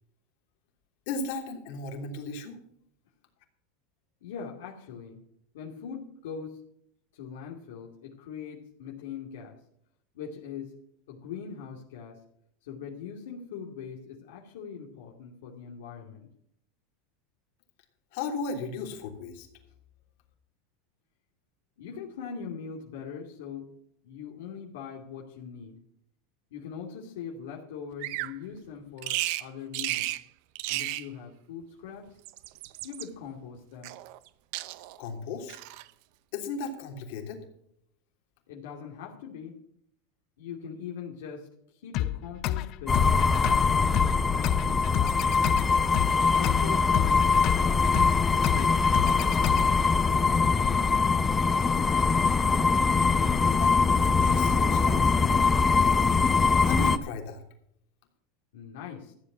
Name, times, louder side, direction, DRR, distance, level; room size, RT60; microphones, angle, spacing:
voice 1, 1.1-2.6 18.1-19.5 35.0-35.6 36.3-37.4 53.5-53.8 54.0-55.5 56.6-57.4, left 3 dB, 65° left, 3 dB, 3.2 m, -36 dB
voice 2, 4.2-5.2 5.5-6.6 7.1-9.6 10.1-10.8 11.1-12.2 12.6-16.3 21.8-23.7 24.0-25.8 26.5-30.1 30.7-32.2 32.8-33.9 38.5-39.5 40.4-45.5 46.2-47.9 48.3-49.5 58.5-59.1, left 7 dB, 85° left, -1 dB, 2.5 m, -41 dB
Bird vocalization bird call bird song, 28.0-28.4 29.0-29.5 29.7-30.2 30.5-31.1 32.1-33.1 33.8-34.3 34.5-35.0 35.5-35.9, right 17 dB, 65° right, 0.7 m, -33 dB
sound 1, 41.9-49.9, left 13 dB, 50° left, 0.7 m, -31 dB
sound 2, 42.9-57.0, left 4 dB, 15° left, 0.8 m, -23 dB
14.0 x 7.9 x 6.2 m, 0.72 s
supercardioid pair, 130°, 0 cm